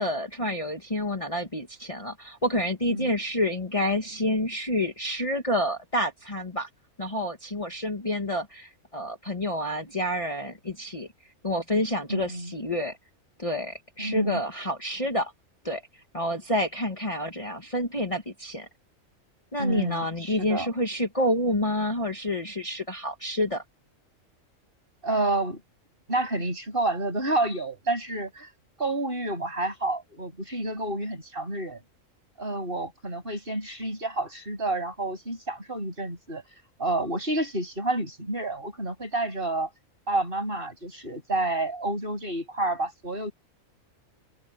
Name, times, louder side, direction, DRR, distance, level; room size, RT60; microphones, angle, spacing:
voice 1, 0.0-6.7 7.0-11.1 11.4-13.0 13.4-15.3 15.6-15.8 16.1-18.7 19.5-23.6, left 1 dB, 25° left, 1.8 m, -28 dB
voice 2, 12.1-12.5 14.0-14.4 19.6-20.7 25.0-25.6 26.1-28.5 28.8-31.8 32.4-36.4 36.8-39.7 40.1-43.3, right 2 dB, 40° right, 7.7 m, -29 dB
omnidirectional pair, 1.4 m